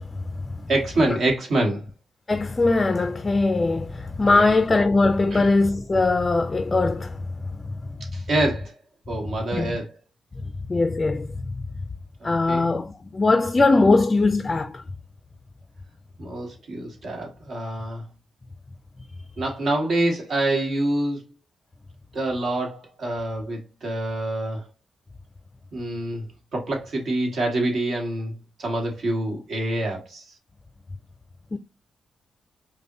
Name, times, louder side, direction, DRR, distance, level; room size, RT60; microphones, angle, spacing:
voice 1, 0.0-0.7 1.1-1.2 2.3-7.7 9.5-9.7 10.7-11.4 12.2-14.8 31.5-31.6, left 3 dB, 30° left, 0.3 m, -21 dB
voice 2, 0.7-1.8 4.2-4.6 5.3-5.5 8.1-8.8 9.1-9.9 12.2-12.7 16.2-18.0 19.4-21.2 22.1-24.7 25.7-30.3, right 1 dB, 65° right, 1.4 m, -26 dB
5.2 x 2.1 x 2.8 m
cardioid pair, 100°, 0 cm